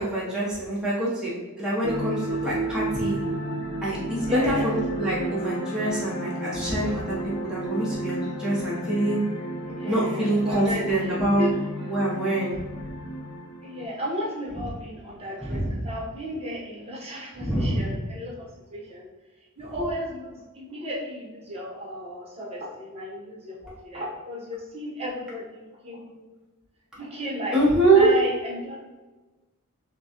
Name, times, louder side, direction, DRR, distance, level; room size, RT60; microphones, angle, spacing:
voice 1, 0.0-3.2 3.8-9.2 9.8-11.5 11.8-12.5 15.4-15.7 17.4-17.9 27.5-28.1, right 1 dB, 5° right, -8 dB, 0.8 m, -25 dB
sound 1, 1.8-13.8, right 1 dB, 30° left, 0.9 m, -32 dB
voice 2, 4.2-4.7 9.7-11.9 13.6-19.1 19.6-26.3 26.9-27.6 27.9-28.8, equal, 30° right, -5 dB, 0.9 m, -34 dB
5.8 x 2.2 x 2.9 m, 1.2 s
head